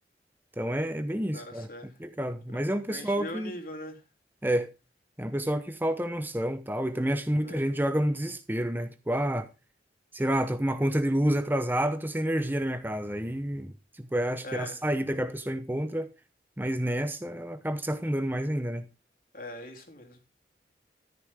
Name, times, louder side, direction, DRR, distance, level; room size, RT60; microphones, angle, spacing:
voice 1, 0.6-3.5 4.4-4.7 5.2-9.5 10.1-13.7 14.0-16.1 16.6-18.9, right 1 dB, 10° right, 0.8 m, -29 dB
voice 2, 1.3-1.9 2.5-4.0 7.4-7.6 14.4-14.8 19.3-20.2, left 1 dB, 55° left, 3.2 m, -41 dB
13.5 x 9.7 x 3.6 m
head